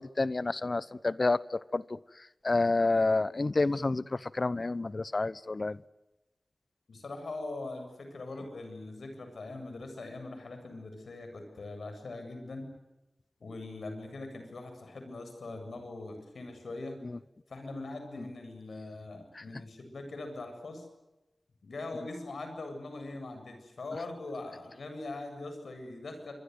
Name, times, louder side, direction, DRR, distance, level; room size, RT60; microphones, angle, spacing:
voice 1, 0.0-5.8 17.0-17.2 19.3-19.4, left 3 dB, 50° left, 18 dB, 0.8 m, -29 dB
voice 2, 6.9-12.7 13.4-17.0 17.5-20.9 21.6-26.3, left 2 dB, 80° left, 6 dB, 7.7 m, -41 dB
27.0 x 23.5 x 8.0 m, 0.99 s
cardioid pair, 50°, 0 cm